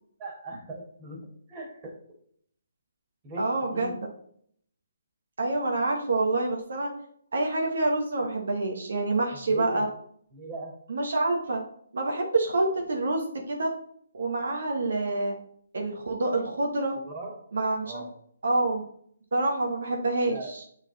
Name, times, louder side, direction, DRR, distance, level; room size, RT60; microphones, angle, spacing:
voice 1, 0.2-1.2 1.5-2.0 3.2-4.0 9.3-9.8 10.3-10.7 17.0-17.4 17.8-18.1 20.3-20.5, right 1 dB, 25° right, -2 dB, 2.2 m, -39 dB
voice 2, 3.4-4.0 5.4-6.9 7.3-9.8 10.9-11.6 11.9-13.7 14.1-15.3 15.7-16.9 17.5-18.0 18.4-18.8 19.3-20.6, right 2 dB, 70° right, 1 dB, 1.3 m, -27 dB
7.3 x 4.0 x 4.0 m, 0.63 s
figure-of-eight pair, 140°, 0 cm